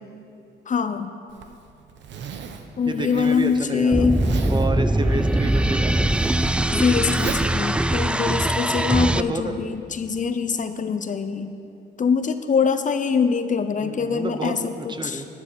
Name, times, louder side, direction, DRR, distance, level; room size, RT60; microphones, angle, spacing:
voice 1, 0.7-1.2 2.8-4.2 6.7-11.5 12.0-15.2, left 6 dB, 40° left, 10 dB, 0.7 m, -23 dB
Zipper (clothing), 1.3-8.7, right 6 dB, 65° right, 1.0 m, -39 dB
voice 2, 2.9-4.1 4.5-5.9 9.1-9.5 13.8-15.3, right 2 dB, 20° right, 8 dB, 0.9 m, -29 dB
sound 1, 3.9-9.2, right 1 dB, 5° right, 0.3 m, -21 dB
11.0 x 10.5 x 6.2 m, 2.7 s
cardioid pair, 90°, 20 cm